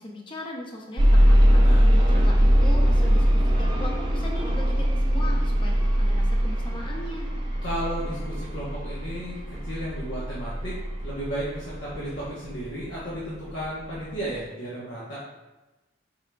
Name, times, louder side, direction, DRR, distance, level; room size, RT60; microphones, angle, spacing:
voice 1, 0.0-1.6 2.2-7.3, left 1 dB, 25° left, 0 dB, 0.5 m, -38 dB
sound 1, 1.0-12.9 13.6-13.7 14.2-14.3, equal, 25° right, 0.4 m, -21 dB
voice 2, 1.6-2.3 7.6-9.4 9.6-10.7 11.0-15.2, right 1 dB, 80° left, -8 dB, 0.9 m, -34 dB
4.7 x 3.6 x 2.2 m, 1.1 s
head